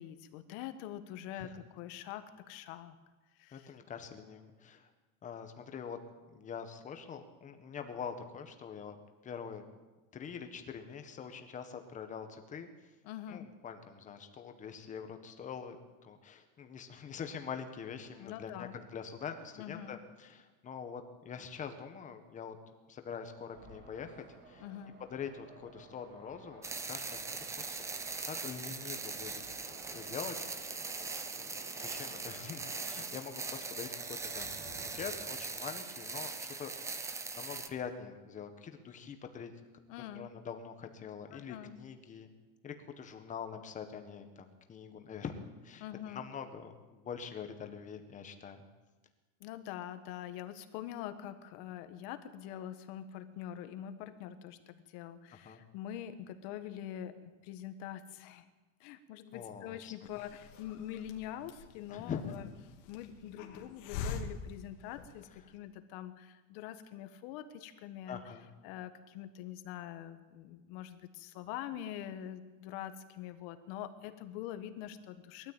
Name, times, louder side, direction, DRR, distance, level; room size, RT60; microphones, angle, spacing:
voice 1, 0.0-3.0 3.4-3.7 13.0-13.5 18.2-18.8 19.6-20.0 24.6-25.0 39.9-40.3 41.3-41.8 45.8-46.3 49.4-57.1 57.4-58.4 58.8-62.5 62.9-68.2 68.6-75.5, left 11 dB, 45° left, 10 dB, 1.5 m, -44 dB
voice 2, 3.5-4.9 5.2-6.0 6.3-8.9 9.2-9.6 10.1-12.7 13.3-15.8 16.0-22.6 22.9-24.6 25.0-27.2 27.6-27.8 28.2-29.4 29.9-30.9 31.3-31.5 31.8-36.7 37.1-39.5 40.0-42.3 42.6-48.6 55.3-55.6 59.3-59.9 61.9-62.3 68.1-68.5, left 7 dB, 20° left, 7 dB, 1.5 m, -44 dB
sound 1, 23.5-35.4, right 2 dB, 25° right, 3.1 m, -54 dB
sound 2, 26.6-37.7, right 4 dB, 5° right, 0.6 m, -41 dB
Hiss, 60.0-65.5, left 5 dB, 65° left, 2.5 m, -45 dB
21.0 x 13.5 x 9.0 m, 1.2 s
supercardioid pair, 175°, 41 cm